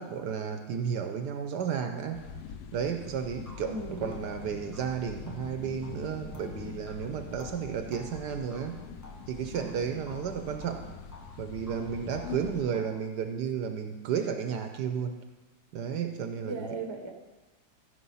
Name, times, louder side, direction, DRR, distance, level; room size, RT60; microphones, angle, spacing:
voice 1, 0.0-2.2 2.7-8.8 9.3-10.8 11.4-15.2 15.7-16.6, right 7 dB, 70° right, 7 dB, 1.2 m, -33 dB
sound 1, 2.1-12.6, left 6 dB, 70° left, 1.0 m, -44 dB
sound 2, 2.9-3.0 3.5-9.8 10.1-11.4 11.7-13.1, left 2 dB, 20° left, 0.5 m, -52 dB
voice 2, 3.6-4.1 12.2-12.7 16.5-17.1, right 1 dB, 20° right, 3 dB, 0.8 m, -37 dB
14.5 x 5.4 x 5.5 m, 1.2 s
omnidirectional pair, 2.0 m